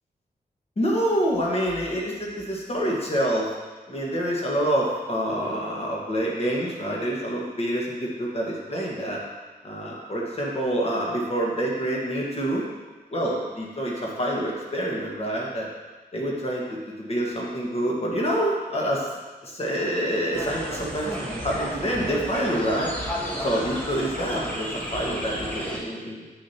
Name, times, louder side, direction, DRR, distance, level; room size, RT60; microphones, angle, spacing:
voice 1, 0.8-3.5 3.9-9.2 9.6-12.7 13.1-15.7 16.1-19.0 19.4-23.1 23.4-26.2, equal, 40° left, -3 dB, 1.5 m, -27 dB
sound 1, 20.3-25.8, equal, 10° left, 1.3 m, -33 dB
7.9 x 6.5 x 2.9 m, 1.3 s
wide cardioid pair, 140°, 16 cm